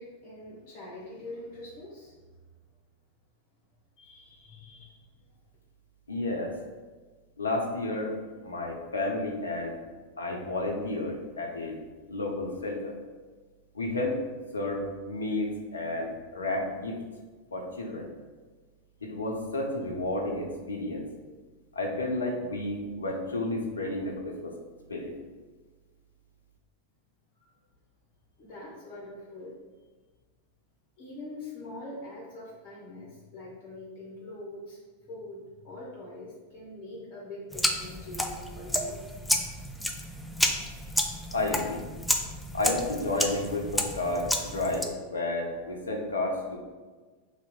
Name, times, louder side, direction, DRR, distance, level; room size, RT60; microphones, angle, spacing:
voice 1, 0.0-2.2 4.0-5.0 27.4-27.5 28.4-29.6 31.0-39.1, left 1 dB, 40° left, -4 dB, 1.0 m, -44 dB
voice 2, 6.1-6.5 7.4-8.1 8.4-9.8 10.2-11.8 12.1-12.9 13.7-14.2 14.5-16.9 17.5-18.1 19.0-21.0 21.7-24.5 24.9-25.1 41.3-41.8 42.5-46.6, left 2 dB, 70° left, 1 dB, 0.7 m, -31 dB
sound 1, 37.5-44.8, left 1 dB, 5° left, 0.4 m, -31 dB
2.9 x 2.8 x 4.2 m, 1.3 s
figure-of-eight pair, 90°, 0 cm